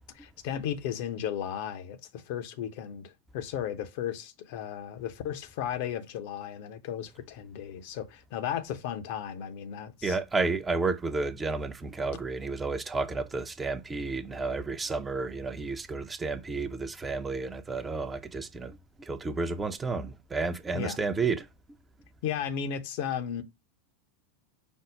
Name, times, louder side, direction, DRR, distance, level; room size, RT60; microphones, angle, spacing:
voice 1, 0.1-10.2 20.7-21.0 22.2-23.4, left 9 dB, 55° left, 0.6 m, -35 dB
voice 2, 10.0-21.5, right 3 dB, 15° right, 0.6 m, -31 dB
5.3 x 2.0 x 4.8 m
figure-of-eight pair, 85°, 0 cm